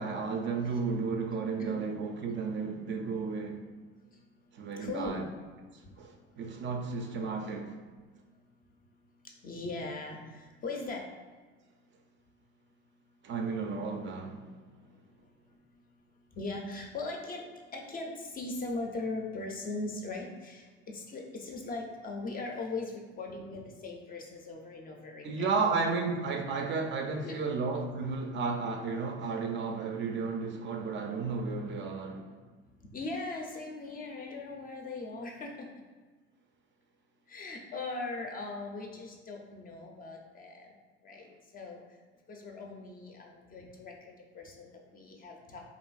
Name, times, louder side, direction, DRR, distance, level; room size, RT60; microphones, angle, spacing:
voice 1, 0.0-3.6 4.5-5.3 6.0-7.7 13.2-14.4 25.2-32.3, right 4 dB, 40° right, 0.4 m, -33 dB
voice 2, 4.8-5.2 9.4-11.1 16.4-17.4 17.7-25.5 25.8-25.9 27.2-27.4 32.9-35.7 37.3-40.7 41.0-41.8 42.3-45.6, left 3 dB, 30° left, 0.4 m, -39 dB
2.9 x 2.5 x 2.3 m
hypercardioid pair, 80°, 31 cm